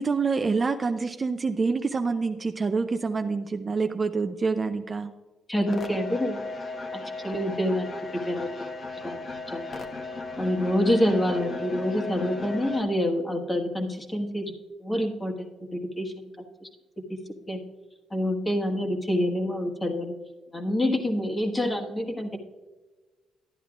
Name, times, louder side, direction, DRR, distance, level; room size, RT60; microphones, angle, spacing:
voice 1, 0.0-5.1, right 4 dB, 30° right, 7 dB, 0.5 m, -27 dB
voice 2, 5.5-6.4 6.9-7.9 8.3-8.5 9.0-9.2 9.5-9.6 10.4-14.5 14.8-15.5 15.7-16.3 16.6-16.7 17.0-17.2 17.5-17.6 18.1-20.1 20.5-22.4, equal, 15° left, 2 dB, 1.4 m, -27 dB
sound 1, 5.7-12.8, left 3 dB, 45° left, 1.1 m, -36 dB
12.0 x 10.0 x 2.4 m, 1.2 s
cardioid pair, 90°, 0 cm